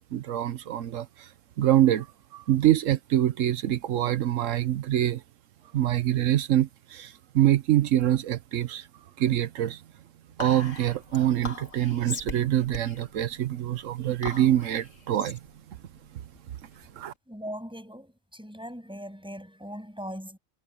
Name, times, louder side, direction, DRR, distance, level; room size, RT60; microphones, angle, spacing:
voice 1, 0.1-1.3 1.6-2.1 2.3-5.2 5.7-8.9 9.2-9.8 10.4-15.4 17.0-17.1, right 12 dB, 85° right, 1.1 m, -25 dB
Whispering, 10.4-17.1, left 3 dB, 80° left, 2.4 m, -41 dB
voice 2, 17.3-20.4, equal, 5° right, 7.0 m, -40 dB
omnidirectional pair, 1.3 m